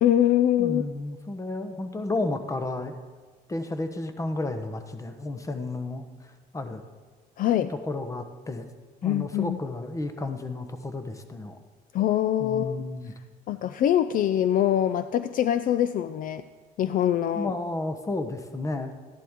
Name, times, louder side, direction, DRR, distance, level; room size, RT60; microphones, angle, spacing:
voice 1, 0.0-0.8 7.4-7.7 9.0-9.6 11.9-12.8 13.5-16.4 16.8-17.5, left 11 dB, 55° left, 12 dB, 0.4 m, -23 dB
voice 2, 0.6-2.9 3.5-6.8 7.6-8.7 9.0-11.6 12.4-13.1 17.3-18.9, left 2 dB, 20° left, 8 dB, 1.0 m, -32 dB
13.0 x 11.0 x 3.7 m, 1.4 s
cardioid pair, 110°, 17 cm